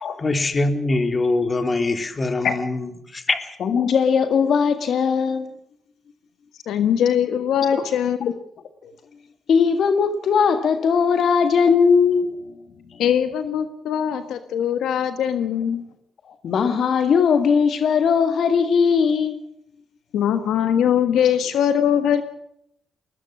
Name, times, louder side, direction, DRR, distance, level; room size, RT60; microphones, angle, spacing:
voice 1, 0.2-3.5, left 2 dB, 35° left, 3.1 m, -23 dB
voice 2, 3.6-5.5 8.8-8.9 9.5-12.4 12.9-13.0 16.4-19.4, left 6 dB, 65° left, 1.8 m, -19 dB
voice 3, 6.7-8.3 13.0-15.8 20.1-22.2, left 9 dB, 80° left, 1.3 m, -21 dB
21.5 x 20.0 x 6.2 m
cardioid pair, 75°, 0 cm